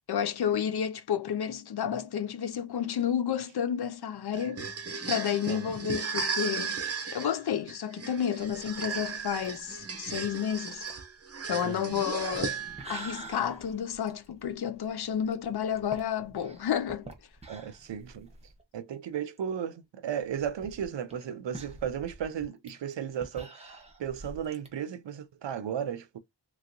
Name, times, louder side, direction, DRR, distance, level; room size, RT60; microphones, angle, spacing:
voice 1, 0.1-4.7 5.1-6.8 7.1-10.9 11.5-12.6 12.9-17.1, left 8 dB, 60° left, 0.5 m, -31 dB
sound 1, 4.3-13.0, right 5 dB, 35° right, 0.6 m, -36 dB
sound 2, 8.4-18.6 19.0-19.1 19.4-19.5 20.2-24.7, right 2 dB, 15° right, 0.9 m, -48 dB
voice 2, 11.6-12.0 17.5-18.3 18.7-26.2, right 8 dB, 80° right, 0.6 m, -35 dB
2.9 x 2.9 x 2.5 m
wide cardioid pair, 95°, 44 cm